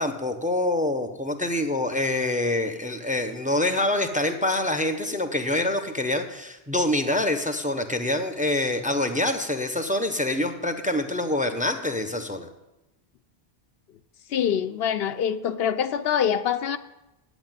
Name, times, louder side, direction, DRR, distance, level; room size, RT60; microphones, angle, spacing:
voice 1, 0.0-12.5, left 1 dB, 10° right, 7 dB, 0.8 m, -26 dB
voice 2, 14.3-16.8, left 8 dB, 70° left, 11 dB, 0.8 m, -25 dB
8.8 x 8.1 x 9.0 m, 0.97 s
omnidirectional pair, 1.1 m